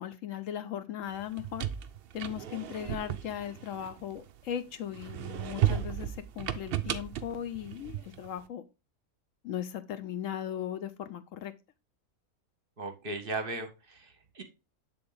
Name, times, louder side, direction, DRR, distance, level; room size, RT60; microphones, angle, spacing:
voice 1, 0.0-1.7 2.1-8.6 9.4-11.5, left 10 dB, 70° left, 0.9 m, -38 dB
sound 1, 1.2-4.5 4.9-8.3, right 11 dB, 80° right, 0.5 m, -34 dB
voice 2, 12.8-14.4, right 2 dB, 45° right, 0.9 m, -37 dB
7.5 x 3.9 x 3.8 m
omnidirectional pair, 1.5 m